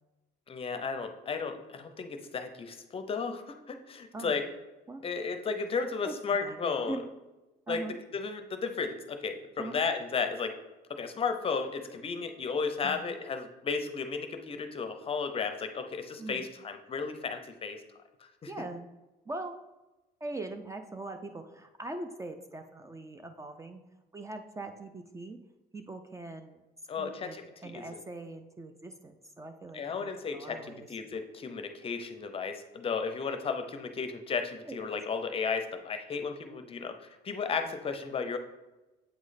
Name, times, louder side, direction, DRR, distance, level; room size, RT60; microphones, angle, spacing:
voice 1, 0.5-4.4 5.0-7.0 7.7-10.6 10.9-17.8 18.2-18.5 26.9-28.0 29.7-38.4, left 5 dB, 35° left, 7 dB, 0.6 m, -34 dB
voice 2, 6.4-7.0 7.7-8.0 9.6-9.8 12.8-13.0 16.2-16.5 18.5-18.8 19.3-19.5 20.2-23.8 24.1-25.4 25.7-26.6 27.0-30.9 34.7-35.0, right 2 dB, 20° right, 7 dB, 0.4 m, -41 dB
7.9 x 3.1 x 4.0 m, 1.1 s
cardioid pair, 110°, 17 cm